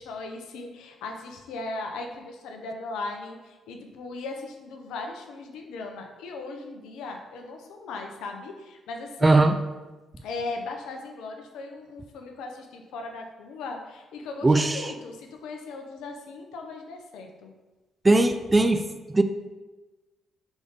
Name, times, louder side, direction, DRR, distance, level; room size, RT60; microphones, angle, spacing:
voice 1, 0.0-9.5 10.2-17.5, left 3 dB, 65° left, 3 dB, 0.8 m, -38 dB
voice 2, 9.2-9.6 14.4-14.9 18.0-18.8 19.1-19.2, right 2 dB, 20° right, 8 dB, 0.5 m, -19 dB
5.1 x 3.9 x 5.1 m, 1.2 s
figure-of-eight pair, 40°, 0 cm